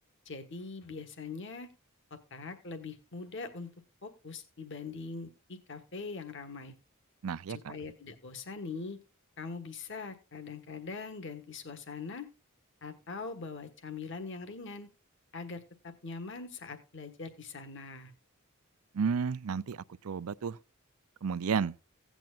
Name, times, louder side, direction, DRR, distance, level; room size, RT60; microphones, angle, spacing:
voice 1, 0.2-1.7 2.1-3.7 4.0-6.7 7.5-9.0 9.4-12.3 12.8-14.9 15.3-18.1, left 4 dB, 60° left, 1.5 m, -42 dB
voice 2, 7.2-7.7 18.9-20.6 21.2-21.7, right 6 dB, 90° right, 0.5 m, -32 dB
16.5 x 9.0 x 2.4 m
head